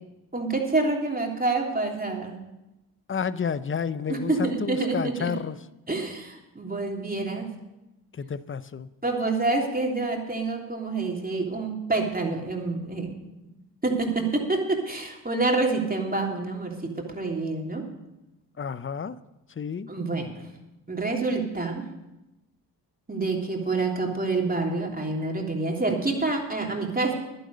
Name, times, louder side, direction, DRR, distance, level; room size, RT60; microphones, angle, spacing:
voice 1, 0.3-2.4 4.1-5.3 5.9-7.5 9.0-13.1 13.8-17.8 19.9-20.3 20.9-21.8 23.1-27.1, right 3 dB, 20° right, 1 dB, 3.2 m, -27 dB
voice 2, 3.1-5.6 8.2-8.9 18.6-19.2 19.6-19.9, left 6 dB, 30° left, 16 dB, 0.6 m, -30 dB
11.5 x 10.0 x 6.7 m, 0.98 s
supercardioid pair, 50°, 43 cm